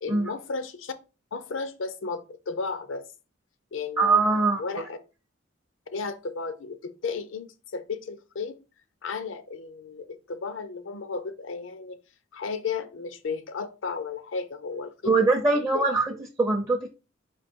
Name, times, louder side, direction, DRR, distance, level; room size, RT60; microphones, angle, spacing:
voice 1, 0.0-0.9 1.3-3.0 3.7-5.0 5.9-8.6 9.0-12.0 12.3-15.3 15.7-15.9, left 4 dB, 75° left, 0.6 m, -34 dB
voice 2, 4.0-4.6 15.1-17.0, right 3 dB, 15° right, 0.5 m, -22 dB
4.4 x 2.6 x 4.4 m
head